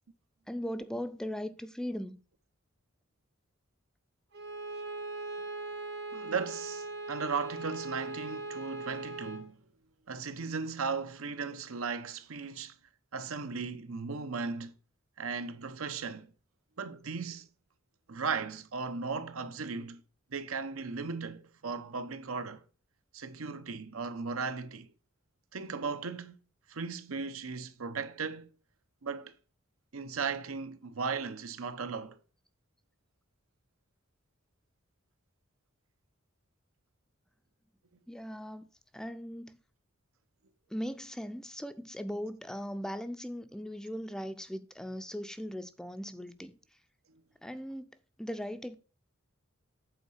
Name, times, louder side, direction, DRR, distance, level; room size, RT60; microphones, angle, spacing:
voice 1, 0.5-2.2 38.1-38.7 38.9-39.6 40.7-46.5 47.4-47.9 48.2-48.8, equal, 5° left, 0.4 m, -39 dB
Bowed string instrument, 4.3-9.5, right 3 dB, 55° right, 0.9 m, -40 dB
voice 2, 6.1-9.6 10.1-12.7 13.1-14.7 15.2-16.3 16.8-17.5 18.1-20.0 20.3-22.6 23.1-24.9 25.5-26.4 26.7-28.5 29.0-29.3 29.9-32.2, right 5 dB, 85° right, 0.8 m, -36 dB
8.1 x 4.1 x 6.4 m
head